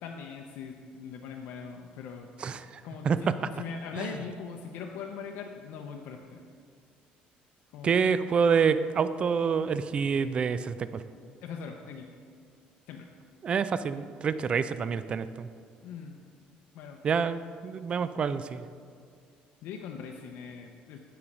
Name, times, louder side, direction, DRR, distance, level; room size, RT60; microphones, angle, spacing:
voice 1, 0.0-2.3 2.8-6.4 7.7-7.9 11.4-12.1 12.9-13.1 15.8-16.2 16.7-17.0 19.6-21.0, left 6 dB, 75° left, 2 dB, 0.6 m, -41 dB
voice 2, 2.4-3.2 4.0-4.1 7.8-11.0 13.4-15.5 17.0-18.7, right 6 dB, 35° right, 13 dB, 0.3 m, -27 dB
8.6 x 4.8 x 5.2 m, 2.2 s
cardioid pair, 120°, 3 cm